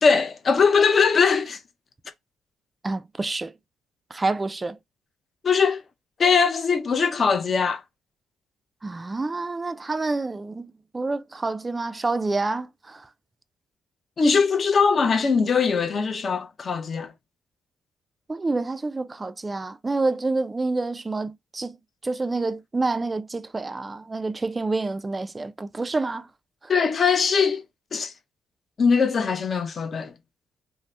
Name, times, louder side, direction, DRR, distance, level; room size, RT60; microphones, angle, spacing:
voice 1, 0.0-1.6 5.4-5.8 6.2-7.8 14.2-17.1 26.7-27.6 27.9-28.1 28.8-30.1, left 5 dB, 45° left, 0.5 m, -21 dB
voice 2, 2.8-3.5 4.1-4.8 8.8-13.1 18.3-21.8 22.0-26.3, right 3 dB, 20° right, 0.3 m, -28 dB
2.6 x 2.0 x 3.2 m
cardioid pair, 90°, 0 cm